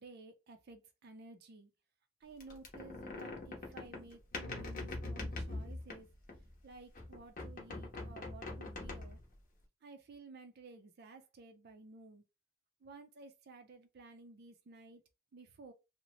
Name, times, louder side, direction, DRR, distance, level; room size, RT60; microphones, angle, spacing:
voice 1, 0.0-1.7 2.2-6.1 6.6-9.2 9.8-12.2 12.8-15.0 15.3-15.7, right 3 dB, 50° right, 0.4 m, -54 dB
sound 1, 2.4-6.6 6.9-9.4, left 2 dB, 40° left, 0.7 m, -43 dB
2.7 x 2.0 x 2.9 m
head